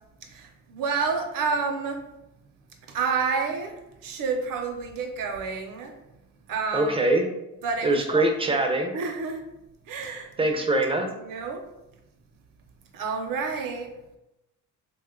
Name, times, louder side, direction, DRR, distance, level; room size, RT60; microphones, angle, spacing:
voice 1, 0.3-2.0 2.9-3.7 4.0-5.9 6.5-6.9 7.6-8.6 8.9-9.4 9.9-10.3 10.7-10.8 11.2-11.6 12.9-13.9, right 5 dB, 60° right, 4 dB, 0.7 m, -29 dB
voice 2, 6.7-7.3 7.8-8.9 10.4-11.1, right 2 dB, 15° right, 3 dB, 0.4 m, -23 dB
2.8 x 2.2 x 3.6 m, 0.91 s
cardioid pair, 105°, 37 cm